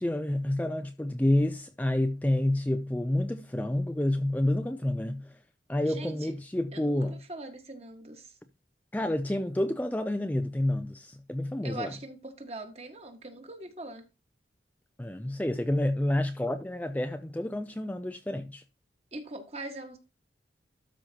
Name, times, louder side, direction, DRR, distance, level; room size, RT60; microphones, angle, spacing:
voice 1, 0.0-5.4 5.7-7.2 8.9-11.9 15.0-18.6, left 1 dB, 10° left, 0.4 m, -29 dB
voice 2, 5.8-6.3 6.7-8.4 11.6-14.0 19.1-20.0, right 2 dB, 35° right, 1.7 m, -42 dB
12.5 x 5.1 x 2.9 m
head